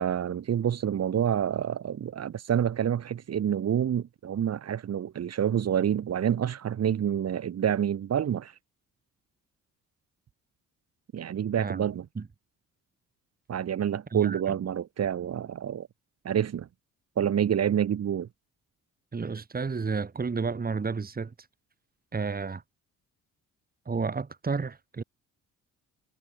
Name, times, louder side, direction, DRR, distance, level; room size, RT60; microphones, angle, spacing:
voice 1, 0.0-8.5 11.1-12.1 13.5-15.9 16.2-16.7 17.2-18.3, right 9 dB, 55° right, 2.5 m, -28 dB
voice 2, 14.1-14.5 19.1-21.3 22.1-22.6 23.9-25.0, right 4 dB, 30° right, 4.0 m, -31 dB
cardioid pair, 90°, 30 cm